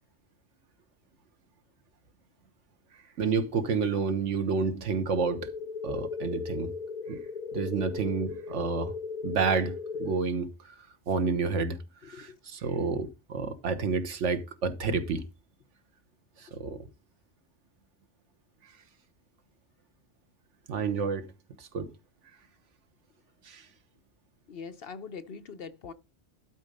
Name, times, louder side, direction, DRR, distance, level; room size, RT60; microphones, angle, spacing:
voice 1, 3.2-5.5 5.8-6.7 7.1-7.2 7.5-8.9 9.2-10.7 11.1-11.8 12.1-15.2 16.4-16.8 20.7-21.3 21.6-21.9 23.4-23.6, right 5 dB, 80° right, 1.4 m, -29 dB
sound 1, 5.1-10.1, left 5 dB, 40° left, 1.3 m, -37 dB
voice 2, 12.0-12.4 24.5-25.9, left 5 dB, 55° left, 0.9 m, -42 dB
12.0 x 4.2 x 5.3 m
omnidirectional pair, 1.2 m